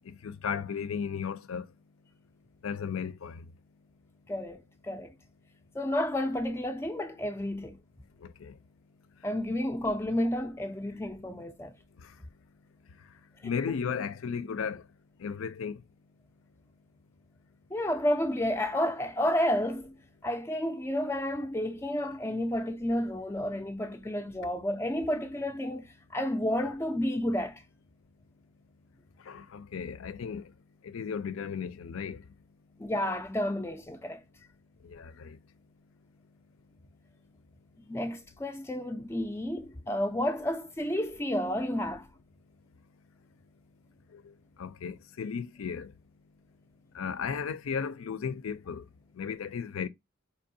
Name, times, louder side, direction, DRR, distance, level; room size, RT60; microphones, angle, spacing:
voice 1, 0.1-1.7 2.6-3.5 8.2-8.5 13.4-14.8 15.2-15.8 29.3-30.4 30.8-32.2 34.8-35.4 44.1-44.2 44.6-45.9 46.9-48.8 49.2-49.9, left 6 dB, 80° left, 0.4 m, -35 dB
voice 2, 4.3-5.1 5.7-7.8 9.2-11.7 17.7-19.9 20.2-27.6 32.8-34.2 37.9-42.1, left 1 dB, 10° left, 0.3 m, -31 dB
4.4 x 2.6 x 2.6 m
head